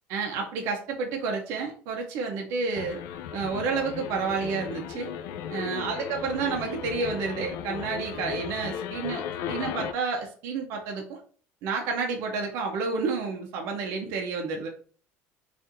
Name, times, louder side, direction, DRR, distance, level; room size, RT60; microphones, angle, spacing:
voice 1, 0.1-3.0 3.3-5.1 5.5-11.2 11.6-14.7, right 4 dB, 55° right, 2 dB, 0.6 m, -30 dB
sound 1, 2.7-9.9, left 9 dB, 70° left, 0.3 m, -36 dB
4.1 x 2.5 x 2.6 m, 0.43 s
cardioid pair, 175°, 5 cm